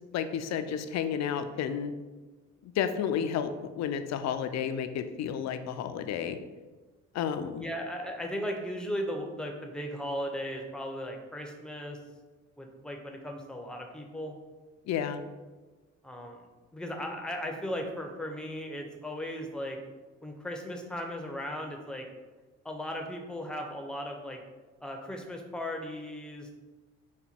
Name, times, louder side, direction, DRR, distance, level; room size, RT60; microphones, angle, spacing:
voice 1, 0.1-1.9 2.6-6.4 7.1-7.6 14.9-15.2, left 8 dB, 65° left, 9 dB, 0.4 m, -31 dB
voice 2, 7.6-12.0 12.6-14.3 16.0-16.5 16.7-19.8 20.2-22.1 22.6-24.4 24.8-26.5, equal, 5° left, 2 dB, 0.6 m, -37 dB
4.0 x 2.2 x 4.3 m, 1.3 s
cardioid pair, 90°, 30 cm